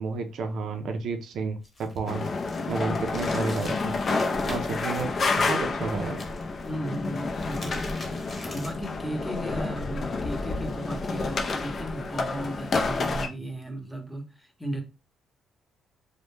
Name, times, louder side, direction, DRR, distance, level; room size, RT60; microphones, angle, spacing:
voice 1, 0.0-2.3 2.7-4.0 4.5-5.1 5.4-6.2, right 4 dB, 70° right, 0.4 m, -31 dB
sound 1, 1.6-5.0 6.1-6.7 7.2-8.9, left 1 dB, 30° left, 1.0 m, -44 dB
sound 2, 2.1-13.3, left 3 dB, 50° left, 0.4 m, -29 dB
voice 2, 6.7-14.8, right 1 dB, ahead, 0.8 m, -36 dB
2.1 x 2.1 x 3.1 m
supercardioid pair, 75°, 0 cm